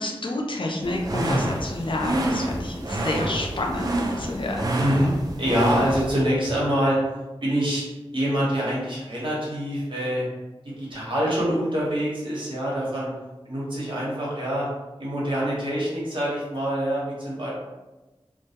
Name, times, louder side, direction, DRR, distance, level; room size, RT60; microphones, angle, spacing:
voice 1, 0.0-3.9 4.1-4.7, left 1 dB, 55° left, 0 dB, 0.4 m, -29 dB
sound 1, 0.8-6.2, right 1 dB, 40° right, 0.4 m, -28 dB
voice 2, 4.8-5.1 5.4-7.0 7.4-7.8 8.1-10.3 10.6-13.1 13.4-14.7 15.0-17.5, equal, 55° right, -6 dB, 0.9 m, -25 dB
2.2 x 2.1 x 2.8 m, 1.1 s
wide cardioid pair, 55°, 10 cm